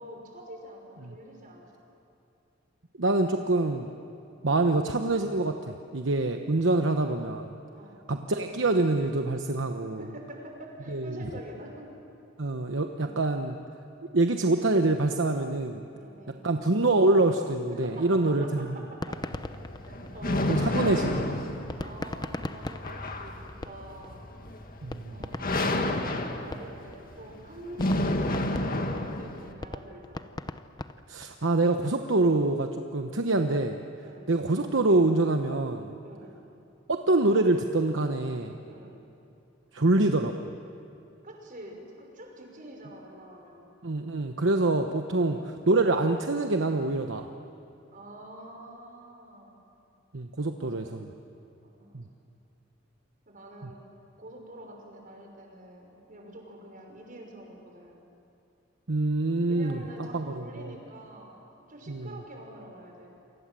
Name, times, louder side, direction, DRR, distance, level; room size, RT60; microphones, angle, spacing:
voice 1, 0.0-1.7 7.7-8.0 10.0-11.9 12.9-13.2 16.0-16.5 17.7-19.3 19.8-20.5 21.8-24.2 25.1-30.3 34.0-34.3 36.0-36.4 38.6-39.0 41.2-43.6 45.2-45.5 47.9-49.6 50.5-51.1 51.6-52.0 53.3-53.8 54.2-58.0 59.5-63.1, right 1 dB, 45° right, 1 dB, 5.9 m, -46 dB
voice 2, 3.0-3.9 4.4-7.5 8.1-10.0 10.9-11.2 12.4-13.6 14.1-15.8 16.4-18.8 20.5-21.4 24.8-25.2 31.1-33.8 34.3-35.9 36.9-38.6 39.7-40.3 43.8-47.3 50.1-51.1 51.9-52.0 53.6-53.7 58.9-60.7 61.9-62.1, right 2 dB, 70° right, 5 dB, 1.1 m, -25 dB
sound 1, 18.9-20.7 21.7-24.1 24.5-24.6 24.9-27.0 27.3-27.4 27.8-31.4, left 2 dB, 20° left, 0.8 m, -38 dB
sound 2, 19.1-29.5, left 1 dB, 50° left, 1.9 m, -31 dB
28.5 x 25.0 x 7.7 m, 2.7 s
head